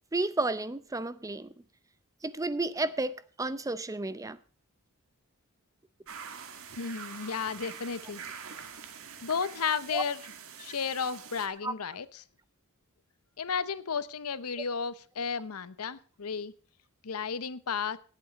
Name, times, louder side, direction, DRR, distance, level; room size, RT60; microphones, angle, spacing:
voice 1, 0.1-1.5 2.2-4.4 9.9-10.0 11.6-11.7, right 2 dB, 15° right, 0.6 m, -32 dB
sound 1, 6.1-11.5, right 7 dB, 65° right, 1.7 m, -45 dB
voice 2, 6.7-8.2 9.2-10.2 10.6-12.2 13.4-16.5 17.0-18.0, left 6 dB, 85° left, 0.8 m, -33 dB
18.5 x 8.4 x 4.1 m
head